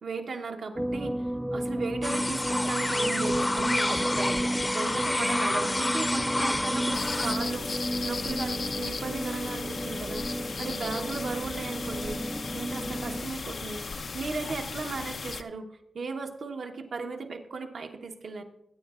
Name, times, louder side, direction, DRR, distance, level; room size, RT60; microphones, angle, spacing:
voice 1, 0.0-4.4 4.7-7.7 8.0-12.2 12.5-18.4, right 4 dB, 70° right, 3 dB, 1.1 m, -36 dB
sound 1, 0.8-13.2, right 1 dB, 10° right, 0.3 m, -33 dB
sound 2, 2.0-7.3, left 1 dB, 25° left, 0.7 m, -29 dB
sound 3, 6.9-15.4, left 4 dB, 65° left, 0.5 m, -36 dB
22.0 x 9.4 x 2.5 m, 0.84 s
supercardioid pair, 45°, 0 cm